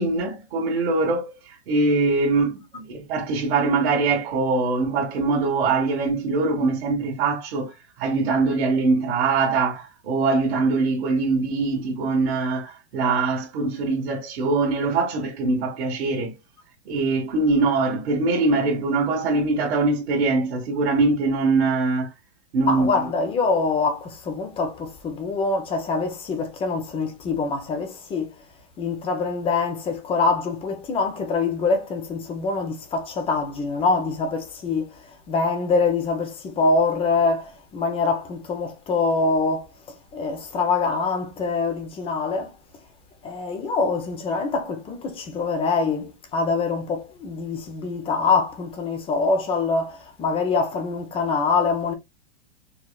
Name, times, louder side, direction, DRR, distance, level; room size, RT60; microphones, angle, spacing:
voice 1, 0.0-16.3 16.8-22.1 22.5-22.9, right 3 dB, 60° right, 1.7 m, -23 dB
voice 2, 22.7-28.3 28.8-34.9 35.3-39.7 40.1-42.5 43.2-51.9, left 4 dB, 15° left, 0.8 m, -24 dB
4.8 x 3.0 x 2.3 m
hypercardioid pair, 145°, 35 cm